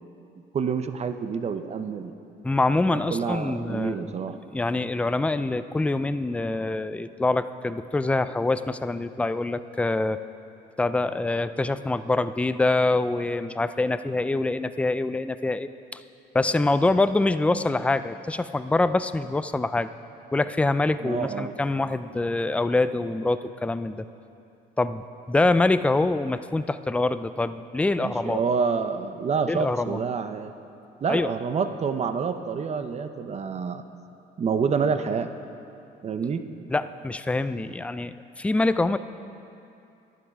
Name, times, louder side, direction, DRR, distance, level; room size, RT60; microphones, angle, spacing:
voice 1, 0.5-2.1 2.9-4.4 21.0-21.5 28.0-30.5 31.0-33.8 34.4-35.3 36.0-36.4, right 6 dB, 40° right, 9 dB, 0.7 m, -28 dB
voice 2, 2.4-4.2 4.5-10.2 10.8-15.7 16.3-19.9 20.3-24.1 24.8-28.4 29.5-30.0 31.1-31.3 36.7-39.0, left 2 dB, 5° left, 13 dB, 0.3 m, -25 dB
11.0 x 9.4 x 4.8 m, 2.7 s
cardioid pair, 90°, 18 cm